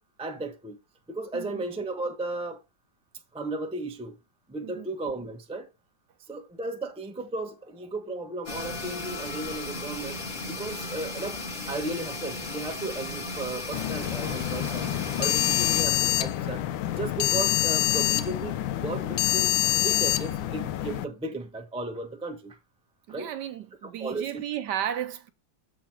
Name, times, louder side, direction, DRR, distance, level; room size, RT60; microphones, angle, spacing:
voice 1, 0.2-0.8 1.1-2.6 3.3-4.2 4.5-5.7 6.3-10.2 10.5-11.4 11.7-14.9 15.2-16.6 17.0-19.5 19.8-22.6 23.1-23.3 24.0-24.4, right 2 dB, 5° right, 0.4 m, -35 dB
voice 2, 1.3-1.6 4.6-4.9 23.1-25.3, right 10 dB, 70° right, 1.2 m, -34 dB
sound 1, 8.5-15.8, left 3 dB, 25° left, 1.5 m, -36 dB
sound 2, 13.7-21.0, left 13 dB, 80° left, 1.3 m, -26 dB
7.4 x 3.8 x 4.4 m
omnidirectional pair, 2.1 m